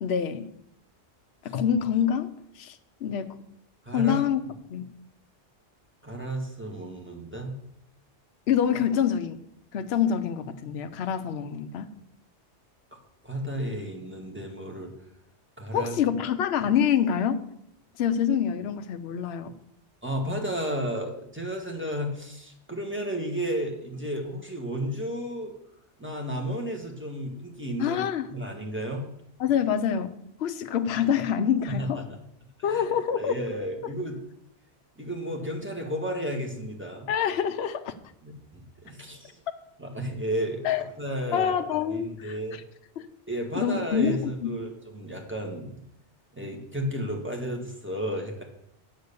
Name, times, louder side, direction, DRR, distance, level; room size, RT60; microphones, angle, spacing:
voice 1, 0.0-0.5 1.4-2.3 2.6-3.4 3.9-4.4 4.7-4.9 8.5-9.4 9.7-11.9 15.7-17.5 18.0-19.5 27.8-28.3 29.4-32.0 32.6-33.4 37.1-37.9 40.6-40.8 41.3-42.6 43.0-43.1 43.6-44.5, left 8 dB, 65° left, 8 dB, 0.9 m, -26 dB
voice 2, 3.9-4.2 6.0-7.6 13.2-14.9 15.6-15.9 20.0-25.5 26.0-28.0 28.3-29.0 31.7-32.2 32.7-32.8 33.2-34.2 35.0-37.1 38.2-39.3 39.8-40.6 41.0-41.5 41.9-42.6 43.3-45.8 46.3-48.4, equal, 10° right, 1 dB, 1.6 m, -32 dB
8.0 x 6.3 x 6.8 m, 0.75 s
omnidirectional pair, 1.2 m